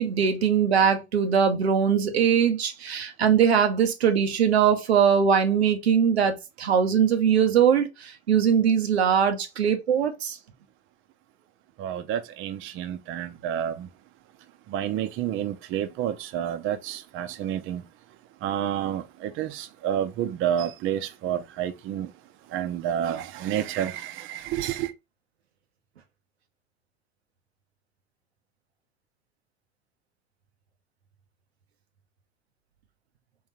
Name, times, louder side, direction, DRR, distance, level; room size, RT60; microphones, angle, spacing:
voice 1, 0.0-10.4, right 7 dB, 90° right, 0.7 m, -21 dB
voice 2, 11.8-13.9 14.7-17.8 18.4-22.1 22.5-24.9, right 10 dB, 40° right, 0.6 m, -29 dB
3.7 x 3.1 x 2.9 m
hypercardioid pair, 85°, 31 cm